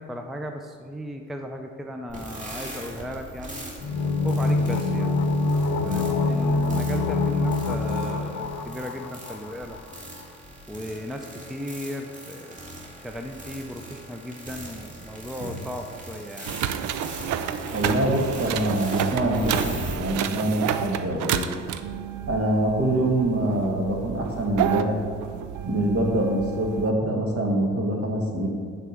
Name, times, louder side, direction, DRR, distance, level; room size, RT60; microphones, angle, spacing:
voice 1, 0.0-3.7 4.2-5.1 5.8-9.8 10.7-12.6 13.0-16.5, equal, ahead, 4 dB, 0.5 m, -36 dB
sound 1, 2.1-20.0, right 1 dB, 25° right, 1.8 m, -40 dB
sound 2, 3.8-9.5 9.8-9.9, left 3 dB, 75° left, 0.7 m, -25 dB
sound 3, 16.5-26.9, right 9 dB, 75° right, 0.5 m, -30 dB
voice 2, 17.7-21.4 22.3-25.0 25.7-28.5, right 1 dB, 50° right, 1 dB, 1.5 m, -25 dB
6.6 x 4.5 x 6.3 m, 2.1 s
cardioid pair, 90°, 30 cm